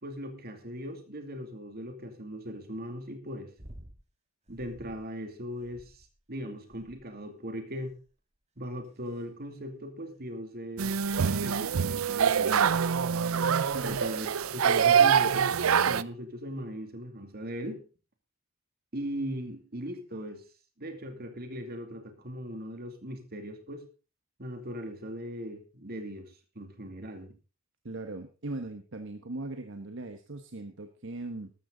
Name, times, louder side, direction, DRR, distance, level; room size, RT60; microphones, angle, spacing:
voice 1, 0.0-3.5 4.5-7.9 8.6-10.9 11.4-12.8 13.8-14.3 14.5-15.5 15.9-17.8 18.9-20.4 20.8-23.8 24.4-27.3, equal, 50° right, 6 dB, 2.6 m, -39 dB
sound 1, 3.6-4.0 4.5-5.0 5.6-6.2 6.7-7.2 7.8-8.1 8.8-9.2 10.2-10.3, equal, 35° right, 1.7 m, -51 dB
sound 2, 10.8-16.0, right 7 dB, 90° right, 0.5 m, -25 dB
voice 2, 27.8-31.5, right 2 dB, 65° right, 7 dB, 1.2 m, -39 dB
13.5 x 13.0 x 3.9 m, 0.34 s
head